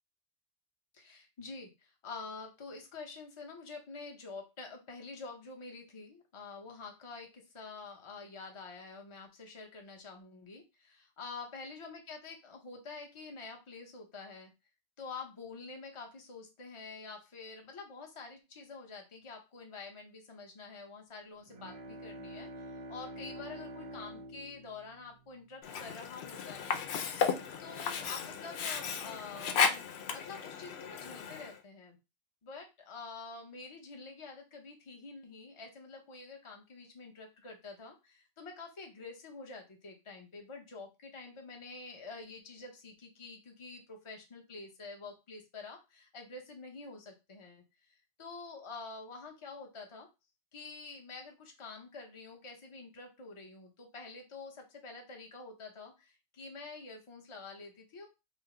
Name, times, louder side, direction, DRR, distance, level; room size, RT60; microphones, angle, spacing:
voice 1, 0.9-14.5 15.0-26.8 27.6-32.0 32.4-50.1 50.5-58.1, left 4 dB, 30° left, 2 dB, 0.8 m, -47 dB
Bowed string instrument, 21.4-26.0, equal, 45° right, 0.5 m, -47 dB
Sink (filling or washing), 25.6-31.6, left 6 dB, 80° left, 0.8 m, -34 dB
4.9 x 2.0 x 3.7 m, 0.26 s
omnidirectional pair, 1.1 m